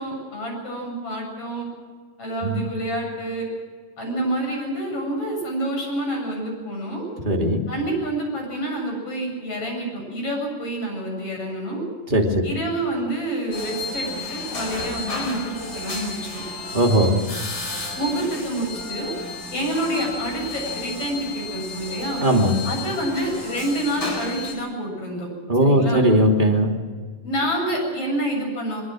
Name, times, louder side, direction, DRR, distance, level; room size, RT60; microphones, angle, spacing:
voice 1, 0.0-1.7 2.2-3.5 4.0-7.1 7.7-11.8 12.4-16.2 18.0-19.1 19.5-22.2 22.6-25.3 25.6-26.1 27.2-28.8, right 1 dB, 45° left, 0 dB, 8.7 m, -28 dB
voice 2, 7.2-7.6 12.1-12.5 16.7-17.2 22.2-22.6 25.5-26.7, right 1 dB, 15° right, 1 dB, 2.4 m, -18 dB
sound 1, 13.5-24.5, left 2 dB, 30° left, 4.7 m, -32 dB
23.0 x 22.5 x 6.3 m, 1.5 s
omnidirectional pair, 3.8 m